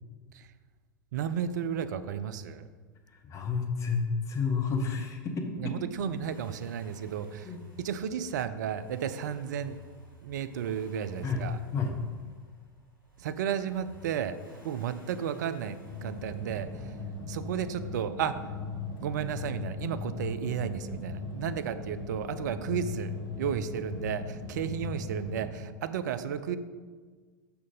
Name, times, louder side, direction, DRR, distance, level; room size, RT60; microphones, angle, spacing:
voice 1, 1.1-2.7 5.6-9.8 10.2-11.6 13.2-14.4 14.6-16.9 17.3-18.3 19.0-26.6, right 8 dB, 60° right, 12 dB, 0.4 m, -33 dB
voice 2, 3.2-5.7 7.4-7.6 11.2-11.4 11.7-11.9, left 5 dB, 25° left, 3 dB, 1.0 m, -30 dB
Accelerating revving vroom, 5.7-17.7 19.0-19.1, left 2 dB, 90° right, 1.7 m, -53 dB
sound 1, 15.9-25.5, left 3 dB, 70° left, 1.3 m, -38 dB
6.3 x 5.7 x 3.8 m, 1.5 s
figure-of-eight pair, 90°, 11 cm